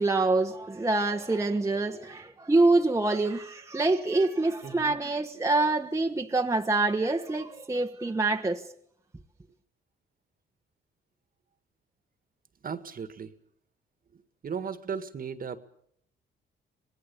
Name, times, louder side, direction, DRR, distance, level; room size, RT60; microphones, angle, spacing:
voice 1, 0.0-8.7, right 2 dB, 15° right, 1.2 m, -26 dB
voice 2, 4.6-5.0 12.6-13.3 14.1-15.6, right 6 dB, 45° right, 1.8 m, -36 dB
26.0 x 19.5 x 7.0 m
cardioid pair, 90°, 20 cm